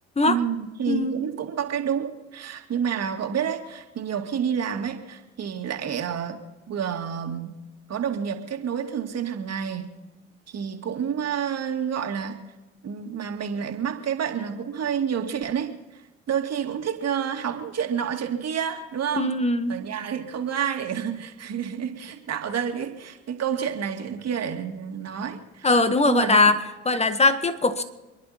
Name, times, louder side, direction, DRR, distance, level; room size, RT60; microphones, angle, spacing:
voice 1, 0.3-7.6 7.9-9.9 10.5-12.4 12.8-16.0 16.3-19.4 19.7-25.7 26.0-26.4, right 8 dB, 45° right, 4 dB, 2.4 m, -29 dB
voice 2, 19.2-19.8 25.6-26.6 26.9-27.8, left 3 dB, 20° left, 10 dB, 1.8 m, -20 dB
27.5 x 11.0 x 4.4 m, 1.1 s
hypercardioid pair, 60°, 36 cm